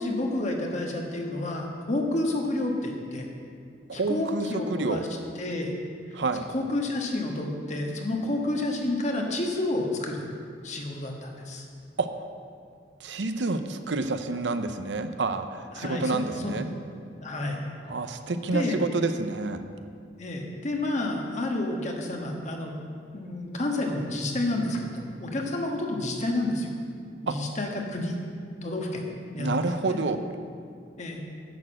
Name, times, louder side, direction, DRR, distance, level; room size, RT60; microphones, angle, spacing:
voice 1, 0.0-3.3 3.9-5.1 5.4-5.7 6.5-10.2 10.6-11.6 15.8-16.6 17.2-17.6 18.5-18.8 20.2-22.7 23.1-26.7 27.2-28.2 28.6-29.0 29.3-29.5 29.9-30.0 31.0-31.2, left 2 dB, 40° left, 1 dB, 1.5 m, -30 dB
voice 2, 3.9-5.0 6.1-6.5 12.0-12.2 13.0-16.7 17.9-19.6 27.3-27.4 29.4-30.2, right 3 dB, 80° right, 9 dB, 0.7 m, -28 dB
10.5 x 6.7 x 7.6 m, 2.2 s
head